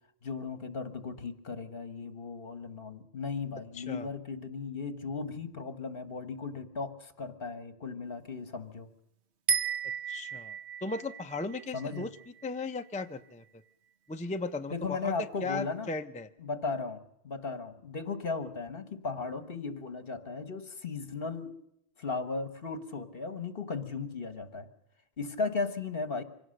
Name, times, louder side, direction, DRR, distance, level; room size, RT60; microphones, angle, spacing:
voice 1, 0.2-8.9 11.7-12.0 14.7-15.9 16.4-21.5 22.0-24.7 25.2-26.2, left 4 dB, 60° left, 10 dB, 1.7 m, -36 dB
voice 2, 3.7-4.1 10.1-12.1 12.4-13.4 14.1-15.1 15.4-16.3, left 3 dB, 10° left, 7 dB, 0.6 m, -36 dB
sound 1, 9.5-12.9, right 6 dB, 90° right, 1.3 m, -34 dB
25.5 x 17.5 x 6.6 m, 0.81 s
omnidirectional pair, 1.1 m